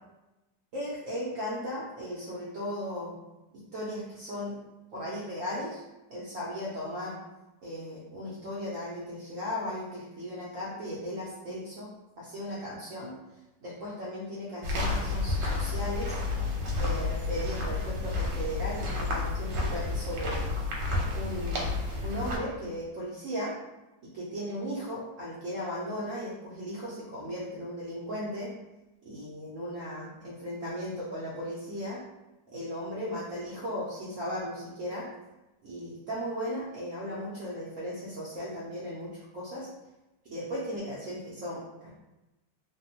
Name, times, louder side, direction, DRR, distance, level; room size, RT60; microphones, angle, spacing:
voice 1, 0.7-3.1 3.7-4.6 4.9-5.8 6.1-7.2 7.6-11.9 12.2-13.1 13.6-16.2 16.8-20.4 21.1-21.8 22.0-23.5 24.1-28.5 29.0-32.0 32.5-35.1 35.6-39.7 40.2-41.9, equal, 65° right, -7 dB, 0.8 m, -36 dB
sound 1, 14.6-22.4, left 3 dB, 80° right, 1.3 m, -30 dB
3.4 x 2.1 x 2.8 m, 1.0 s
omnidirectional pair, 2.0 m